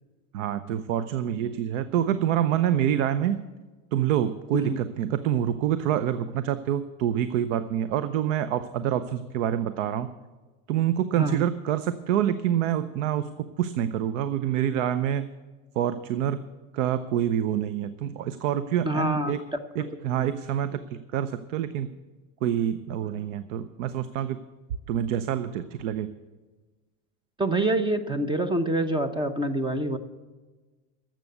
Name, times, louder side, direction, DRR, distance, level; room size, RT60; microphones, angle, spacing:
voice 1, 0.3-3.4 3.9-10.1 10.7-15.3 15.8-16.4 16.7-19.4 19.7-21.9 22.4-24.4 24.9-26.1, right 10 dB, 80° right, 13 dB, 0.7 m, -26 dB
voice 2, 18.8-19.4 19.8-19.9 27.4-30.0, right 1 dB, 15° right, 10 dB, 0.8 m, -26 dB
12.5 x 7.6 x 8.1 m, 1.3 s
supercardioid pair, 130°, 37 cm